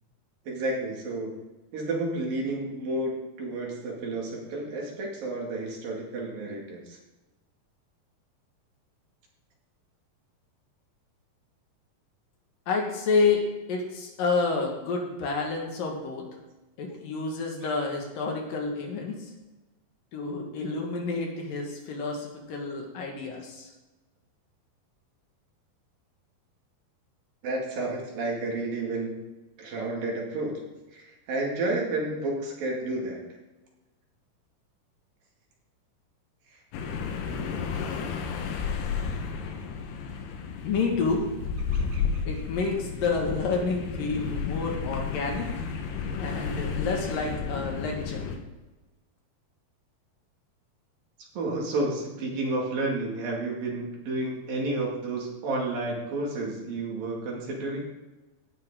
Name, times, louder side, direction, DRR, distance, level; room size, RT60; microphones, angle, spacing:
voice 1, 0.5-1.4 1.7-7.0 27.4-29.2 29.6-30.6 30.9-33.2 41.7-42.0 51.4-57.9, right 2 dB, 65° right, -1 dB, 4.0 m, -31 dB
voice 2, 12.7-16.2 16.8-19.3 20.1-23.7 40.6-41.2 42.2-45.5 46.2-48.3, left 4 dB, 65° left, 1 dB, 3.3 m, -29 dB
sound 1, 36.7-48.4, left 6 dB, 85° left, 3.2 m, -32 dB
16.5 x 10.5 x 3.8 m, 1.1 s
omnidirectional pair, 4.5 m